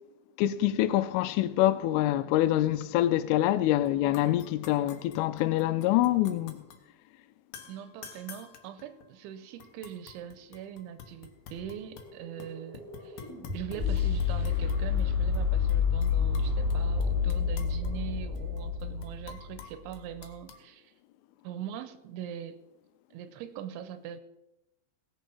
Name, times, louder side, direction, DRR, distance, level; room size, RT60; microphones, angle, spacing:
voice 1, 0.4-6.6, left 14 dB, 90° left, 3.2 m, -25 dB
sound 1, 3.9-4.0 4.1-6.8 7.5-9.2 9.6-12.1 12.4-15.1 15.3-15.4 15.7-16.7 17.0-20.6, left 7 dB, 70° left, 2.1 m, -49 dB
voice 2, 7.7-13.3 13.5-20.9 21.4-22.6 23.1-24.2, right 10 dB, 85° right, 3.0 m, -42 dB
sound 2, 11.6-19.7, left 6 dB, ahead, 2.5 m, -29 dB
18.0 x 7.4 x 5.4 m
omnidirectional pair, 5.6 m